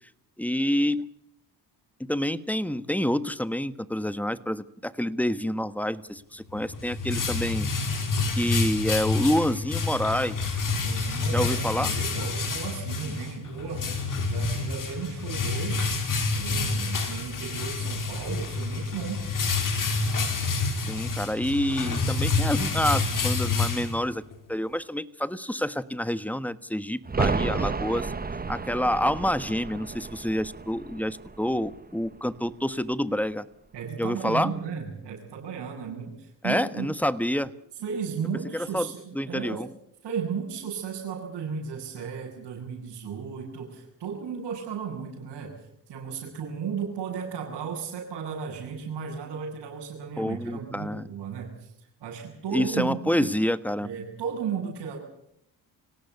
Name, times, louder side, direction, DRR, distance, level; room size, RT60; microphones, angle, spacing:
voice 1, 0.4-1.1 2.0-7.7 8.3-10.4 11.3-11.9 20.9-24.2 24.5-28.1 28.5-33.4 34.0-34.5 36.4-37.5 38.5-38.9 39.1-39.7 50.2-51.1 52.5-53.9, left 1 dB, 5° left, 13 dB, 1.3 m, -27 dB
sound 1, 6.5-24.4, left 4 dB, 50° left, 5.0 m, -28 dB
voice 2, 7.1-7.5 10.7-15.9 16.3-19.2 33.7-36.9 37.8-39.6 40.0-45.5 45.9-53.3 53.8-55.0, right 6 dB, 70° right, -6 dB, 7.8 m, -35 dB
sound 2, 27.0-32.6 32.9-33.0, right 4 dB, 20° right, 1.4 m, -32 dB
26.0 x 17.5 x 8.4 m, 0.78 s
cardioid pair, 85°, 41 cm